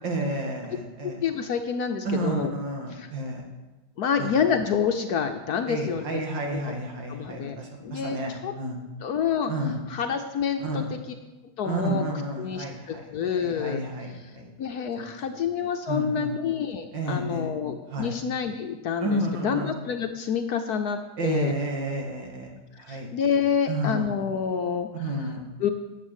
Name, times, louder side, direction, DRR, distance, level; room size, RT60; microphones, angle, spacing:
voice 1, 0.0-1.2 2.0-3.4 4.2-4.3 5.7-8.8 9.5-9.8 10.6-10.9 11.6-14.4 15.0-15.2 15.9-16.3 16.9-17.5 17.9-18.1 19.0-19.8 21.2-22.5 22.8-23.1 23.7-24.1 25.0-25.4, right 1 dB, 70° right, 1 dB, 2.7 m, -31 dB
voice 2, 1.0-2.5 2.9-3.1 4.0-6.2 6.5-6.6 7.1-8.5 9.0-9.5 9.9-11.2 11.6-12.0 12.4-13.8 14.6-21.5 22.9-24.9 25.6-25.7, left 7 dB, 65° left, 6 dB, 1.1 m, -28 dB
10.0 x 7.4 x 8.1 m, 1.1 s
omnidirectional pair, 2.1 m